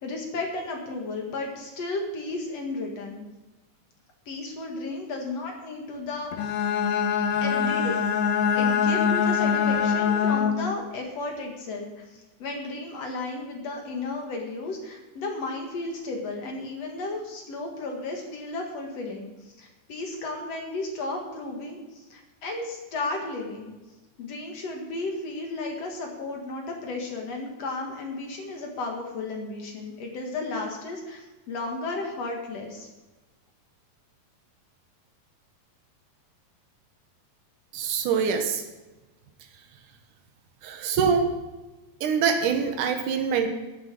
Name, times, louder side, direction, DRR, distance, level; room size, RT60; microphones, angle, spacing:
voice 1, 0.0-3.3 4.3-6.7 7.4-8.1 8.6-19.3 19.6-23.7 24.2-32.9, left 2 dB, 50° left, 1 dB, 2.5 m, -34 dB
Bowed string instrument, 6.3-10.8, left 7 dB, 80° left, 1.6 m, -23 dB
voice 2, 37.7-38.6 40.6-41.3 42.0-43.5, right 6 dB, 65° right, 5 dB, 2.6 m, -24 dB
13.5 x 8.3 x 6.2 m, 1.1 s
omnidirectional pair, 4.3 m